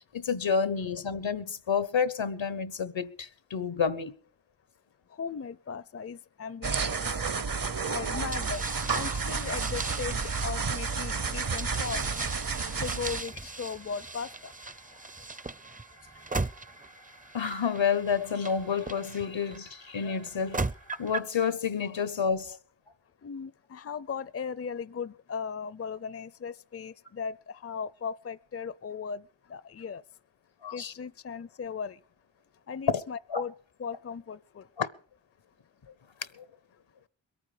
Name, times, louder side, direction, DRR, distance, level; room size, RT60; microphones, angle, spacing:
voice 1, 0.1-4.1 17.3-20.7 21.0-22.6 30.6-30.9 32.9-33.0 33.3-33.4 34.8-34.9 36.4-36.5, left 6 dB, 80° left, 1.1 m, -29 dB
voice 2, 5.1-7.2 7.9-8.6 8.9-12.0 12.8-14.5 23.2-29.2 29.5-30.0 30.7-32.0 32.7-33.5 33.8-34.7, left 6 dB, 30° left, 0.6 m, -37 dB
sound 1, 6.6-13.2, right 5 dB, 50° right, 0.9 m, -31 dB
sound 2, 8.3-19.6 20.2-21.4, right 3 dB, 20° right, 0.6 m, -38 dB
sound 3, 11.1-21.1, right 2 dB, 80° right, 2.5 m, -55 dB
22.0 x 9.2 x 5.0 m
cardioid pair, 45°, 45 cm